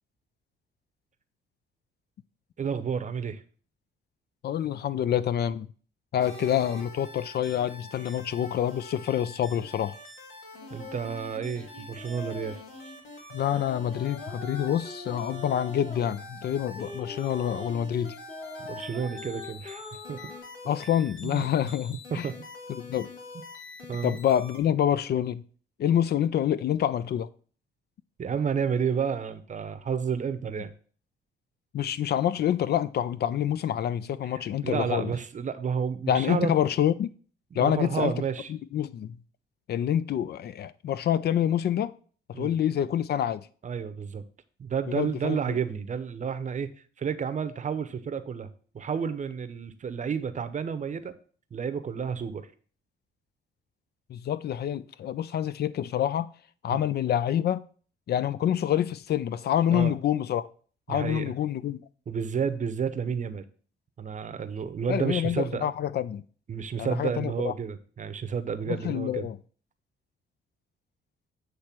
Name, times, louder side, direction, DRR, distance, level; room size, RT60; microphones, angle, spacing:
voice 1, 2.6-3.4 10.7-12.6 18.6-20.3 21.2-21.7 22.1-22.4 23.9-24.2 28.2-30.7 34.3-36.5 37.5-38.5 42.3-42.5 43.6-44.2 44.6-46.7 47.0-48.5 48.7-51.1 51.5-52.5 56.7-56.8 59.7-59.9 60.9-61.3 62.1-63.4 64.0-65.7 66.5-69.3, right 6 dB, 40° right, 0.7 m, -31 dB
voice 2, 4.4-5.7 6.1-9.9 13.3-18.2 20.7-22.3 22.8-23.1 24.0-25.4 25.8-27.3 31.7-35.1 36.1-37.1 37.5-38.1 38.5-39.2 39.7-41.9 42.3-43.5 44.9-45.4 54.1-56.3 56.6-57.6 58.1-60.4 60.9-61.8 64.9-66.2 66.8-67.5 68.7-69.4, left 10 dB, 55° left, 0.4 m, -27 dB
sound 1, 6.2-24.6, left 1 dB, 85° left, 1.8 m, -46 dB
sound 2, 10.5-13.0 13.4-16.1 16.7-20.4, left 3 dB, 35° left, 2.1 m, -42 dB
8.3 x 3.2 x 5.9 m
cardioid pair, 90°, 20 cm